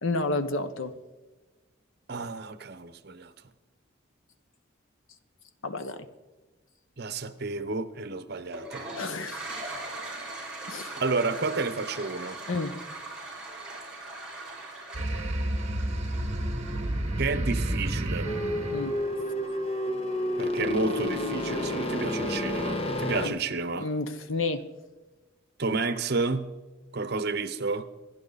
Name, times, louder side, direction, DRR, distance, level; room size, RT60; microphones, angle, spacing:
voice 1, 0.0-0.9 5.6-6.1 8.9-9.5 10.7-10.9 12.5-12.7 18.7-18.9 23.2-23.3 23.7-24.6, left 3 dB, 80° left, 11 dB, 1.1 m, -30 dB
voice 2, 2.1-3.3 7.0-8.9 11.0-12.4 17.2-18.3 20.4-23.9 25.6-26.5 26.9-27.9, right 3 dB, 55° right, 12 dB, 0.9 m, -31 dB
Toilet flush, 8.5-17.3, right 2 dB, 5° right, 5.8 m, -40 dB
sound 1, 14.9-19.9, right 1 dB, 35° right, 1.6 m, -31 dB
sound 2, 18.2-23.3, left 1 dB, 30° left, 1.3 m, -30 dB
26.5 x 10.5 x 4.1 m, 1.2 s
head